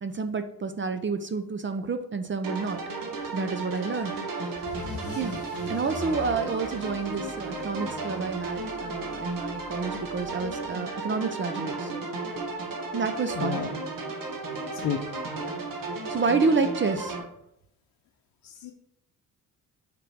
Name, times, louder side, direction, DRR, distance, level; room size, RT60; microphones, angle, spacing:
voice 1, 0.0-2.8 3.3-4.7 5.1-5.4 5.7-12.1 12.9-13.6 16.1-17.2, right 4 dB, 30° right, 8 dB, 0.6 m, -29 dB
sound 1, 2.4-17.2, right 3 dB, 60° right, 1.5 m, -34 dB
Car / Engine starting / Accelerating revving vroom, 3.7-10.9, left 3 dB, 40° left, 1.3 m, -45 dB
voice 2, 13.4-13.7 14.8-15.0 15.3-15.4 18.4-18.7, left 9 dB, 65° left, 2 dB, 0.7 m, -31 dB
5.1 x 5.0 x 4.6 m, 0.74 s
cardioid pair, 70°, 37 cm